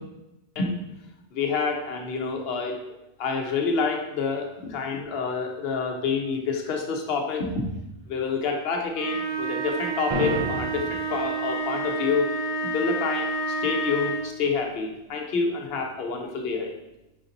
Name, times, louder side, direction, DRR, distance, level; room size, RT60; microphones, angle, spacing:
voice 1, 1.3-2.8 3.2-7.7 8.1-12.3 12.7-13.3 13.6-16.7, left 4 dB, 65° left, 2 dB, 0.9 m, -28 dB
sound 1, 8.9-14.4, right 2 dB, 85° right, 2.1 m, -29 dB
sound 2, 10.1-11.1, equal, 35° right, 0.6 m, -29 dB
5.1 x 2.7 x 3.8 m, 0.93 s
omnidirectional pair, 1.2 m